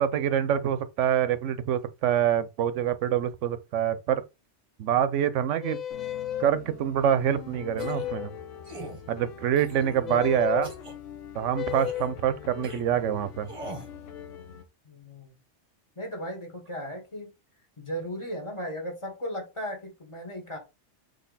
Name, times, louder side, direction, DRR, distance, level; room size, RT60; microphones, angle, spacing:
voice 1, 0.0-4.2 4.8-5.8 6.4-8.3 9.1-10.7 11.3-13.5, right 9 dB, 85° right, 0.9 m, -26 dB
sound 1, 5.6-6.5 7.8-8.4 10.0-10.7 11.5-12.2, left 11 dB, 50° left, 0.5 m, -32 dB
sound 2, 5.9-14.7, left 7 dB, 90° left, 1.1 m, -44 dB
sound 3, 7.8-8.1 8.6-9.0 9.6-10.1 10.6-10.9 11.7-12.1 12.6-12.8 13.5-13.9, right 1 dB, 30° right, 1.0 m, -41 dB
voice 2, 10.0-10.4 12.4-12.6 14.8-15.4 16.0-17.3 17.8-20.6, equal, 25° left, 1.5 m, -36 dB
4.1 x 3.2 x 4.0 m
omnidirectional pair, 1.2 m